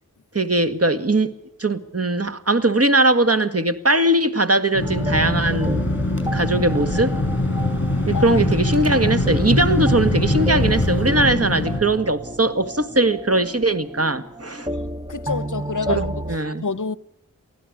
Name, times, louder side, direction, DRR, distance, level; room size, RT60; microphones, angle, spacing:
voice 1, 0.3-1.3 1.6-5.9 6.3-7.1 8.1-14.7 15.9-16.6, right 2 dB, 45° right, 2.0 m, -20 dB
sound 1, 4.7-11.8, left 2 dB, 35° left, 7.9 m, -23 dB
sound 2, 4.8-16.4, right 1 dB, 15° right, 0.8 m, -31 dB
voice 2, 15.1-16.4 16.6-17.0, left 5 dB, 65° left, 0.9 m, -28 dB
24.5 x 16.0 x 9.9 m
wide cardioid pair, 40°, 33 cm